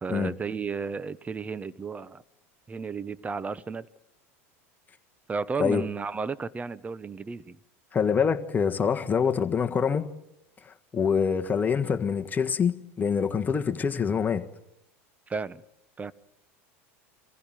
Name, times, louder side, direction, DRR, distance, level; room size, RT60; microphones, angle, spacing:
voice 1, 0.0-2.2 2.7-3.9 5.3-7.6 15.3-15.6 16.0-16.1, right 5 dB, 20° right, 0.9 m, -33 dB
voice 2, 7.9-10.1 10.9-14.4, left 6 dB, 25° left, 1.5 m, -25 dB
24.0 x 15.5 x 9.1 m
hypercardioid pair, 100°, 7 cm